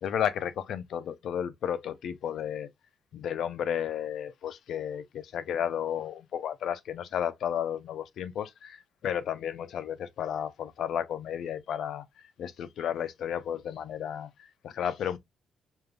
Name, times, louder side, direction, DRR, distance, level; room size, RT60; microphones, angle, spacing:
voice 1, 0.0-2.7 3.1-12.1 12.4-15.2, left 9 dB, 70° left, 0.6 m, -33 dB
5.1 x 2.6 x 2.4 m
cardioid pair, 90°, 0 cm